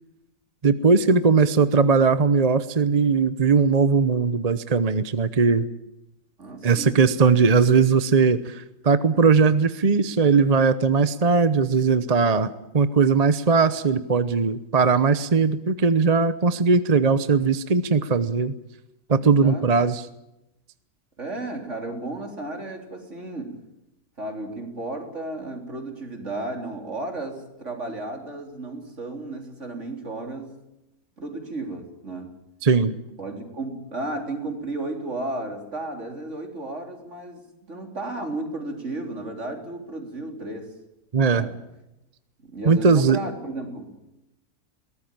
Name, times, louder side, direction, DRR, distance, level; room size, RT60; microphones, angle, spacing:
voice 1, 0.6-5.7 6.6-18.5 19.1-20.0 32.6-33.0 41.1-41.5 42.7-43.2, right 5 dB, 35° right, 13 dB, 0.8 m, -19 dB
voice 2, 6.4-7.0 19.2-19.7 21.2-23.6 24.2-30.6 31.2-32.4 33.2-37.4 37.7-40.7 41.3-41.5 42.4-44.1, right 2 dB, 50° right, 4 dB, 4.1 m, -33 dB
22.0 x 18.0 x 8.9 m, 0.91 s
omnidirectional pair, 1.6 m